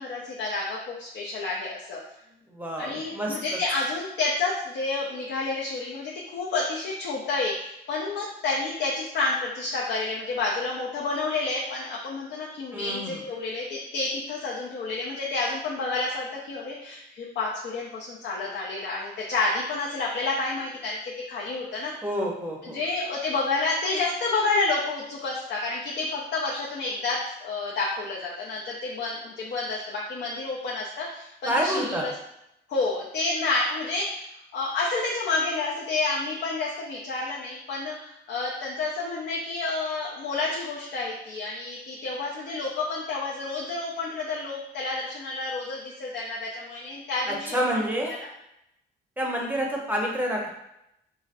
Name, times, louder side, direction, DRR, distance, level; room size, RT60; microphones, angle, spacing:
voice 1, 0.0-2.0 2.8-21.0 21.3-21.9 22.7-32.1 32.7-34.3 34.5-48.2, left 3 dB, 60° left, -4 dB, 0.6 m, -29 dB
voice 2, 2.5-3.6 12.7-13.2 22.0-22.8 31.4-32.1 47.3-48.2 49.2-50.5, equal, 10° right, -1 dB, 0.7 m, -28 dB
3.9 x 2.0 x 2.4 m, 0.82 s
cardioid pair, 90°, 20 cm